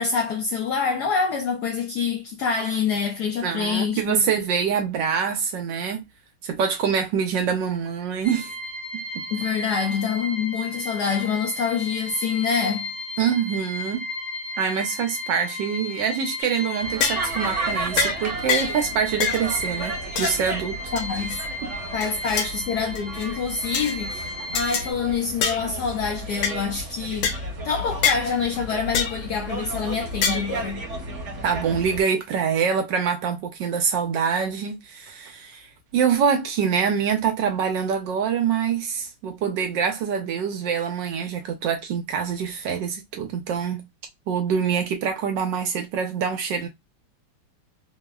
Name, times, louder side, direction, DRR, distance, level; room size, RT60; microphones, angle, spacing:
voice 1, 0.0-4.2 9.3-12.9 20.9-21.4 21.9-27.3 27.6-30.9, left 6 dB, 70° left, 1.0 m, -26 dB
voice 2, 3.4-6.0 6.4-8.5 8.9-9.2 13.2-14.0 14.6-20.8 21.6-21.7 31.4-35.7 35.9-43.9 44.3-46.7, right 7 dB, 75° right, 1.2 m, -25 dB
sound 1, 8.2-24.9, left 1 dB, 40° left, 0.4 m, -34 dB
sound 2, 16.4-16.6 17.0-17.3 18.0-18.2 18.5-18.8 19.2-19.5 20.2-20.4 21.0-21.4 22.0-22.5 23.0-23.3 23.7-24.0 24.5-24.9 25.4-25.7 26.4-26.6 27.2-27.4 28.0-28.3 28.9-29.2 30.2-30.5, left 6 dB, 85° left, 1.5 m, -25 dB
sound 3, 16.8-32.0, right 2 dB, 45° right, 1.0 m, -33 dB
3.5 x 2.0 x 2.3 m
omnidirectional pair, 2.3 m